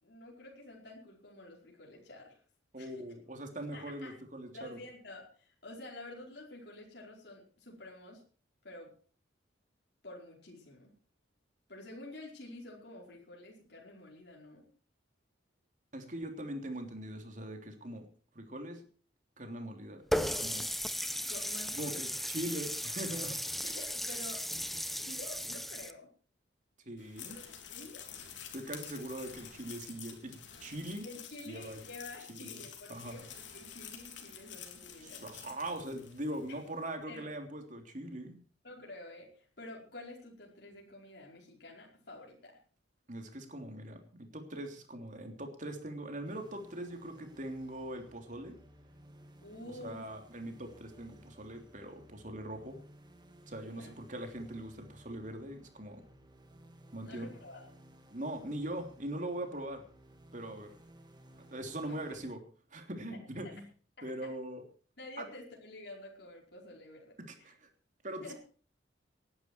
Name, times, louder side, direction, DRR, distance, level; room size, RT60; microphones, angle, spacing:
voice 1, 0.0-2.4 2.8-3.0 3.7-4.1 4.5-8.2 8.6-8.9 10.0-10.9 11.7-14.6 21.3-22.0 23.6-24.6 24.9-26.1 27.3-28.0 31.0-35.3 36.5-36.6 37.1-37.3 38.6-42.6 49.4-50.0 53.7-53.9 57.0-57.7 61.9-62.0 63.1-63.2 63.4-63.5 64.2-64.3 65.0-67.5 68.2-68.3, left 2 dB, 60° left, -2 dB, 5.0 m, -49 dB
voice 2, 2.7-4.8 15.9-18.0 18.3-18.8 19.4-20.7 21.7-23.6 26.8-27.4 28.5-31.0 31.4-31.8 32.3-32.6 32.9-33.2 35.0-38.4 43.1-48.6 49.8-52.8 53.5-56.1 56.9-57.3 58.1-59.8 60.3-60.7 61.5-62.4 62.7-63.7 64.0-64.6 65.2-65.3 67.2-67.7 68.0-68.3, right 1 dB, 40° right, 5 dB, 3.3 m, -41 dB
Water tap faucet, 20.1-25.9, equal, ahead, 0.9 m, -36 dB
sound 1, 27.0-36.5, left 8 dB, 80° left, 3.5 m, -49 dB
sound 2, 46.2-62.3, right 1 dB, 25° right, 2.3 m, -58 dB
19.0 x 11.5 x 4.6 m, 0.42 s
head